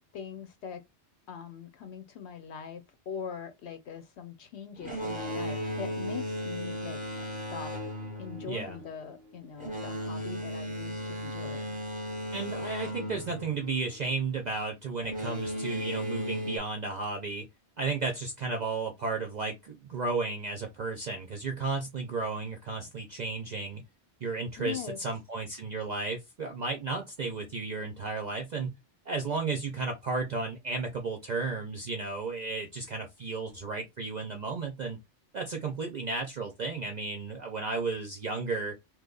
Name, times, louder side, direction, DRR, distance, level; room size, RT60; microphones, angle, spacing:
voice 1, 0.1-0.8 1.3-7.0 7.5-7.7 8.2-11.8 24.6-25.0, left 7 dB, 70° left, 0.9 m, -42 dB
Boat Water vehicle, 4.8-14.2 15.0-16.6, equal, 10° right, 0.8 m, -36 dB
voice 2, 8.5-8.8 12.3-17.5 17.8-23.8 24.2-28.8 29.1-35.0 35.3-38.8, right 4 dB, 50° right, 0.5 m, -33 dB
2.9 x 2.3 x 3.7 m
omnidirectional pair, 1.2 m